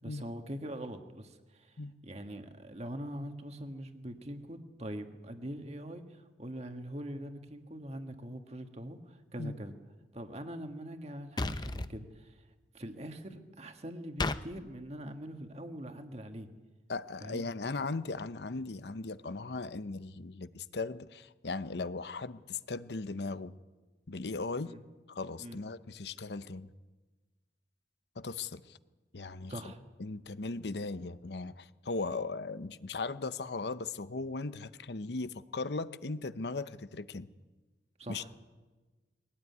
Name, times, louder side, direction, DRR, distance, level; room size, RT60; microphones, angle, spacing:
voice 1, 0.0-9.7 10.1-12.4 12.7-16.5 17.2-17.5 24.6-24.8 25.4-25.6 29.5-29.8 38.0-38.3, right 1 dB, 35° right, 6 dB, 1.7 m, -43 dB
sound 1, 11.4-11.9 14.2-14.4, left 2 dB, 25° left, 0.7 m, -32 dB
voice 2, 16.9-23.5 24.1-24.7 25.1-26.7 28.2-28.8 29.1-29.5 30.0-37.3 38.1-38.3, left 3 dB, 70° left, 13 dB, 0.8 m, -38 dB
22.0 x 17.5 x 9.6 m, 1.3 s
head